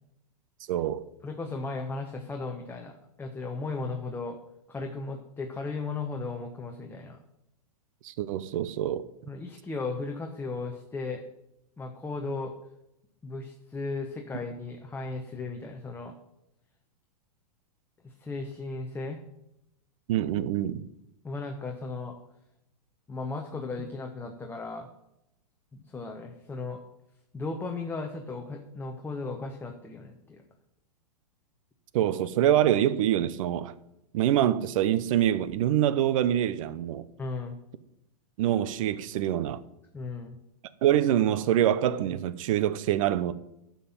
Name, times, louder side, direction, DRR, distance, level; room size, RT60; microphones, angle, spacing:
voice 1, 0.7-1.0 8.0-9.0 20.1-20.8 31.9-33.7 34.1-37.0 38.4-39.6 40.8-43.3, right 11 dB, 55° right, 0.8 m, -25 dB
voice 2, 1.2-2.9 3.2-4.4 4.7-7.2 9.3-11.2 11.8-12.5 13.2-16.2 18.0-19.2 21.2-22.2 23.1-24.9 25.7-26.8 27.3-30.4 37.2-37.6 39.9-40.4, left 3 dB, 10° left, 1.0 m, -36 dB
11.0 x 5.9 x 7.2 m
hypercardioid pair, 115°, 20 cm